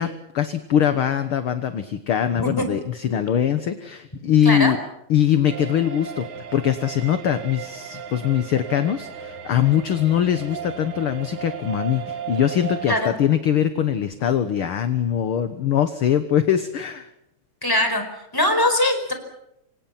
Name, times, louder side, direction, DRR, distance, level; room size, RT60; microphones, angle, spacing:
voice 1, 0.0-4.8 5.1-17.1, left 9 dB, 55° left, 9 dB, 1.8 m, -22 dB
sound 1, 5.5-13.0, right 8 dB, 80° right, 3.6 m, -35 dB
voice 2, 17.6-18.0 18.3-19.1, left 1 dB, 5° left, 6 dB, 4.7 m, -21 dB
28.0 x 25.5 x 5.9 m, 0.80 s
omnidirectional pair, 3.3 m